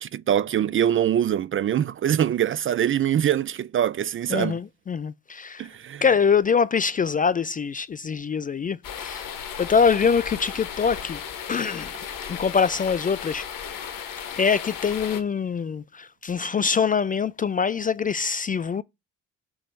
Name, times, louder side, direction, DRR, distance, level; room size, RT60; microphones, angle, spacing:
voice 1, 0.0-4.6 5.6-6.0, right 10 dB, 35° right, 0.5 m, -23 dB
voice 2, 4.3-5.7 6.0-9.3 9.6-11.2 11.5-12.0 12.3-13.5 13.8-13.9 14.3-18.8, left 6 dB, 25° left, 0.4 m, -24 dB
sound 1, 8.8-15.2, left 8 dB, 60° left, 1.3 m, -35 dB
6.2 x 3.1 x 5.2 m
figure-of-eight pair, 45°, 38 cm